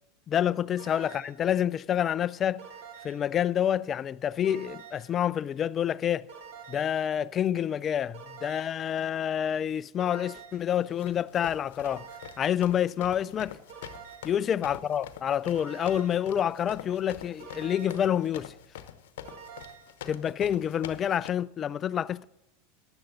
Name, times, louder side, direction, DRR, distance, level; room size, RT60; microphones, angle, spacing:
voice 1, 0.3-2.7 3.0-6.3 6.7-12.1 12.4-13.6 14.2-18.5 20.1-22.2, left 9 dB, 35° left, 0.3 m, -28 dB
sound 1, 0.8-1.5 2.6-3.3 4.4-5.2 6.3-7.0 8.1-8.9 10.0-10.7 11.8-12.6 13.7-14.4 15.5-16.3 17.4-18.1 19.2-20.0, right 7 dB, 65° right, 2.2 m, -47 dB
sound 2, 10.7-21.3, left 10 dB, 65° left, 0.9 m, -45 dB
15.0 x 10.5 x 3.9 m
hypercardioid pair, 90°, 0 cm